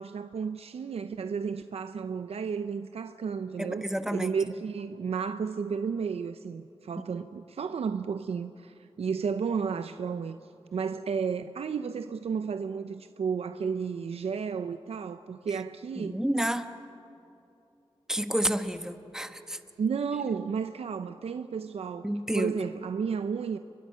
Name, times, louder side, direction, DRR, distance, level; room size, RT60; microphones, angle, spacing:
voice 1, 0.0-3.9 4.1-10.4 10.7-16.2 19.8-22.1 22.3-23.6, right 6 dB, 80° right, 0.6 m, -32 dB
voice 2, 3.6-4.3 16.0-16.7 18.1-19.6 22.0-22.5, equal, 5° right, 1.1 m, -30 dB
30.0 x 23.0 x 5.7 m
wide cardioid pair, 100°, 10 cm